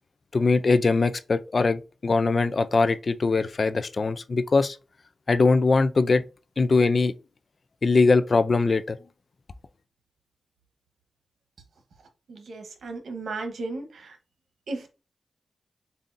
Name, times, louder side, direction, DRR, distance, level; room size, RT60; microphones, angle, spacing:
voice 1, 0.3-4.8 5.3-6.2 6.6-7.1 7.8-9.0, left 3 dB, 55° left, 0.5 m, -21 dB
voice 2, 12.3-14.2 14.7-14.9, right 3 dB, 85° right, 1.1 m, -35 dB
7.1 x 2.7 x 2.6 m
cardioid pair, 60°, 0 cm